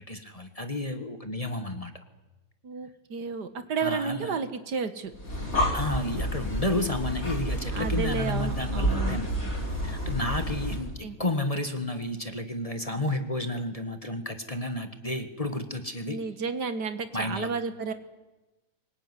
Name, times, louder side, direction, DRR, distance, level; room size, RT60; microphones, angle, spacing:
voice 1, 0.1-1.9 3.8-4.4 5.7-9.3 9.8-16.2 17.1-17.5, left 1 dB, 20° left, 8 dB, 1.5 m, -31 dB
voice 2, 2.6-5.1 7.6-9.2 11.0-11.2 16.1-17.9, right 5 dB, 75° right, 11 dB, 2.1 m, -32 dB
Breathing, 5.1-10.9, equal, 40° left, 4.9 m, -30 dB
24.0 x 21.0 x 9.7 m, 1.1 s
omnidirectional pair, 1.8 m